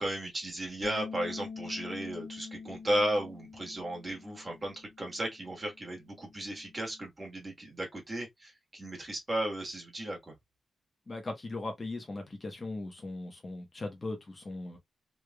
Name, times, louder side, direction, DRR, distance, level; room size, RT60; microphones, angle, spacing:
voice 1, 0.0-10.3, right 1 dB, 25° right, 1.4 m, -35 dB
Bass guitar, 0.8-7.1, left 5 dB, 90° left, 1.0 m, -46 dB
voice 2, 11.1-14.8, left 2 dB, 30° left, 0.9 m, -39 dB
3.2 x 3.1 x 2.3 m
wide cardioid pair, 160°, 0 cm